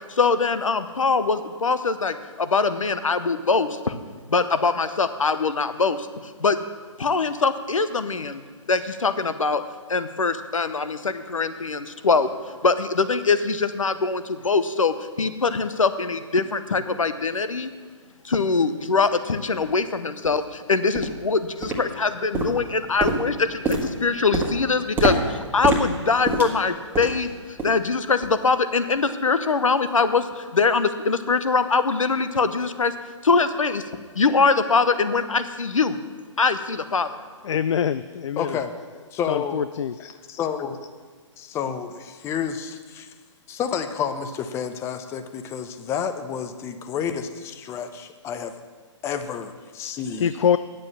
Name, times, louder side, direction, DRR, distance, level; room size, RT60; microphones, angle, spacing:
voice 1, 0.1-3.9 4.3-6.6 7.0-8.4 8.7-9.6 9.9-17.7 18.2-32.9 33.2-33.8 34.1-36.0 36.4-37.2, left 4 dB, 90° left, 11 dB, 0.8 m, -23 dB
sound 1, 19.0-19.1 19.6-19.7 20.2-20.4 20.9-21.2 21.6-22.1 22.3-27.3 27.6-27.9 28.2-28.4 28.9-29.0, right 2 dB, 10° right, 1.4 m, -27 dB
voice 2, 37.4-38.6 39.3-39.9 50.2-50.6, left 8 dB, 65° left, 14 dB, 0.4 m, -24 dB
voice 3, 38.4-38.7 39.1-39.6 40.0-40.9 41.4-43.1 43.5-48.5 49.0-50.3, left 7 dB, 15° left, 9 dB, 0.6 m, -30 dB
9.3 x 7.5 x 7.4 m, 1.5 s
hypercardioid pair, 135°, 16 cm